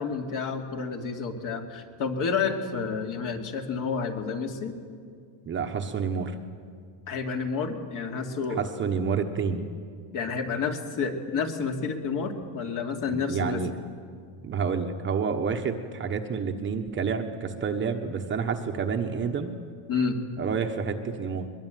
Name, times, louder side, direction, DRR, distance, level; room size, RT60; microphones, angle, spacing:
voice 1, 0.0-4.8 7.1-8.6 10.1-13.6 19.9-20.2, left 5 dB, 50° left, 3 dB, 2.7 m, -30 dB
voice 2, 5.4-6.3 8.6-9.6 13.1-13.7 14.4-19.5 20.4-21.5, right 6 dB, 25° right, 5 dB, 1.1 m, -29 dB
22.0 x 22.0 x 9.2 m, 2.1 s
cardioid pair, 170°, 42 cm